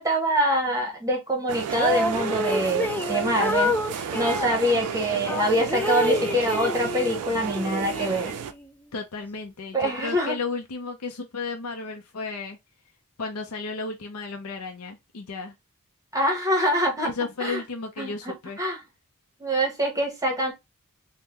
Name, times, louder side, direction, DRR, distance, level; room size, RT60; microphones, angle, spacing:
voice 1, 0.0-3.8 4.1-8.3 9.7-10.4 16.1-17.1 17.4-17.6 18.0-18.8 19.4-20.5, equal, 15° right, 0.9 m, -25 dB
sound 1, 1.5-8.5, right 7 dB, 80° right, 0.4 m, -32 dB
sound 2, 1.7-4.6 5.3-7.2 7.6-8.6, left 1 dB, 10° left, 0.3 m, -28 dB
voice 2, 8.9-12.6 13.2-15.5 17.0-18.6, left 4 dB, 75° left, 0.6 m, -33 dB
3.7 x 2.1 x 2.8 m
head